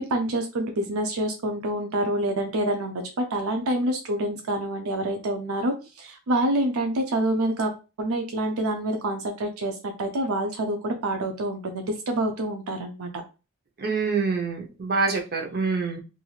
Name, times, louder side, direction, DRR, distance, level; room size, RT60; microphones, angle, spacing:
voice 1, 0.0-7.7 8.0-13.1, right 1 dB, 80° right, 4 dB, 0.5 m, -27 dB
voice 2, 13.8-16.0, right 4 dB, 45° right, 1 dB, 0.7 m, -26 dB
3.1 x 2.6 x 2.4 m, 0.30 s
head